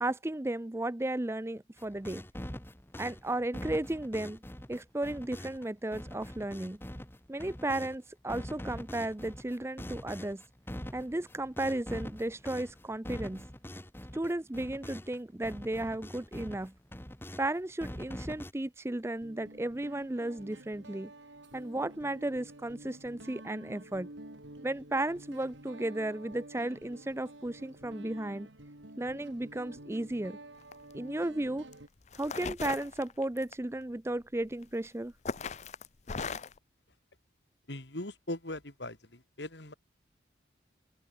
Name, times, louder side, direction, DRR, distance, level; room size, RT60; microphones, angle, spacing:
voice 1, 0.0-2.2 3.0-4.4 4.7-6.8 7.3-10.4 10.9-13.5 14.1-16.7 17.4-21.1 21.5-24.1 24.6-28.5 29.0-30.4 30.9-31.7 32.1-35.1, right 1 dB, 15° right, 0.5 m, -34 dB
sound 1, 1.8-8.0 8.3-15.2 15.4-17.5 17.8-18.5, left 1 dB, 10° left, 1.2 m, -44 dB
Guitar, 19.2-31.9, right 1 dB, 80° right, 3.6 m, -50 dB
sound 2, 30.6-30.9 31.7-31.8 32.1-33.5 34.6-34.9 35.2-36.6, left 4 dB, 35° left, 0.6 m, -38 dB
voice 2, 37.7-39.7, left 1 dB, 65° left, 3.1 m, -40 dB
open air
head